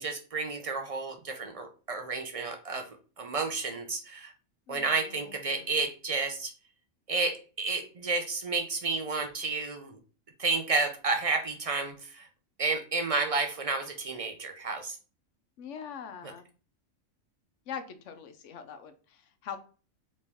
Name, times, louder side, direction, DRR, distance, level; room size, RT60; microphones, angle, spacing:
voice 1, 0.0-4.3 4.7-6.5 7.1-10.0 10.4-12.3 12.6-15.0, right 4 dB, 45° right, 5 dB, 0.4 m, -31 dB
voice 2, 4.7-5.7 15.6-16.4 17.7-19.6, left 7 dB, 70° left, 8 dB, 1.0 m, -43 dB
4.2 x 3.1 x 3.5 m, 0.36 s
omnidirectional pair, 1.4 m